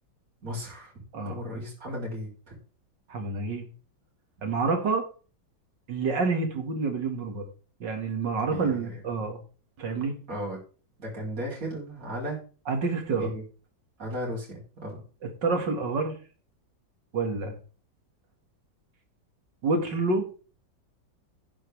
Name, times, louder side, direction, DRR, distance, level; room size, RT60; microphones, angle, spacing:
voice 1, 0.4-0.9 1.2-2.5 8.5-9.0 10.3-10.6 11.0-12.4 13.2-13.4 14.0-15.0, equal, 45° right, -4 dB, 4.1 m, -35 dB
voice 2, 3.1-3.7 4.4-5.0 5.9-7.5 7.8-9.4 9.8-10.1 12.7-13.3 15.4-16.2 17.1-17.5 19.6-20.3, right 4 dB, 70° right, 5 dB, 2.6 m, -28 dB
11.0 x 9.1 x 3.5 m, 0.37 s
omnidirectional pair, 2.1 m